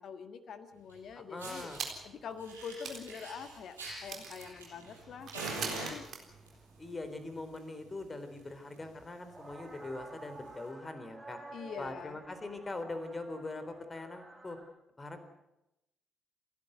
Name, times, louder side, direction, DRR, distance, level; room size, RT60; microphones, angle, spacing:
voice 1, 0.0-1.7 2.0-6.1 11.5-12.2, left 6 dB, 55° left, 10 dB, 1.6 m, -45 dB
Fire, 0.9-1.0 1.4-1.8 2.4-5.0 5.3-6.5 7.3-7.6 7.9-8.0 8.4-8.5 8.7-9.0 9.5-9.6 10.5-10.6, right 3 dB, 80° right, 5.3 m, -43 dB
voice 2, 1.2-1.8 6.8-11.4 11.8-14.6 15.0-15.2, left 2 dB, 25° left, 9 dB, 3.7 m, -42 dB
sound 1, 1.7-2.2 2.5-2.6 2.8-6.9, right 6 dB, 50° right, 3.9 m, -44 dB
sound 2, 3.1-3.2 3.4-3.9 4.3-5.7 6.0-14.6, right 2 dB, 25° right, 7.4 m, -53 dB
29.0 x 12.0 x 9.3 m, 0.90 s
figure-of-eight pair, 40°, 0 cm